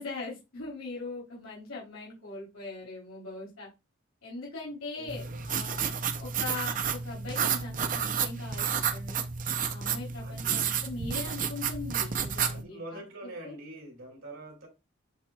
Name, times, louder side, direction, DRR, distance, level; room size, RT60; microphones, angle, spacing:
voice 1, 0.0-3.7 4.2-5.9 6.2-9.2 9.7-13.5, left 3 dB, 80° left, 3.2 m, -41 dB
voice 2, 4.9-5.4 10.2-10.6 12.5-14.7, right 1 dB, 70° right, 2.6 m, -45 dB
sound 1, 5.1-12.6, right 7 dB, 40° right, 0.6 m, -31 dB
11.0 x 4.3 x 2.3 m
head